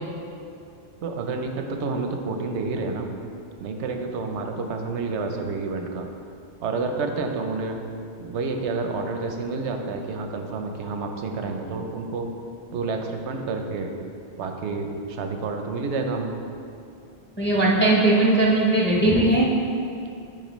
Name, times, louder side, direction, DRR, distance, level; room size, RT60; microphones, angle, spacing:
voice 1, 1.0-3.1 3.6-6.1 6.6-7.8 8.2-12.3 12.7-13.9 14.4-16.3, right 3 dB, 80° right, 4 dB, 0.9 m, -29 dB
voice 2, 17.4-19.5, right 2 dB, 10° left, -3 dB, 0.7 m, -19 dB
9.1 x 4.6 x 3.0 m, 2.5 s
omnidirectional pair, 1.1 m